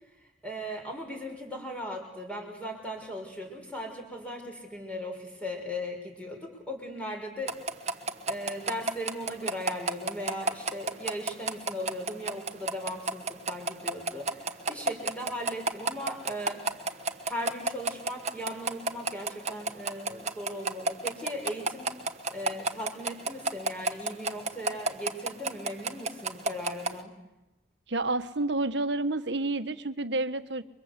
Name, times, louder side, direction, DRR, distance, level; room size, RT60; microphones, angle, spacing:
voice 1, 0.2-7.5 7.9-16.6 17.2-21.9 22.3-27.1, equal, 5° left, 2 dB, 5.7 m, -38 dB
sound 1, 7.5-26.9, right 3 dB, 35° right, 1.4 m, -30 dB
voice 2, 27.9-30.6, right 2 dB, 65° right, 10 dB, 1.4 m, -29 dB
29.5 x 24.0 x 8.3 m, 0.96 s
head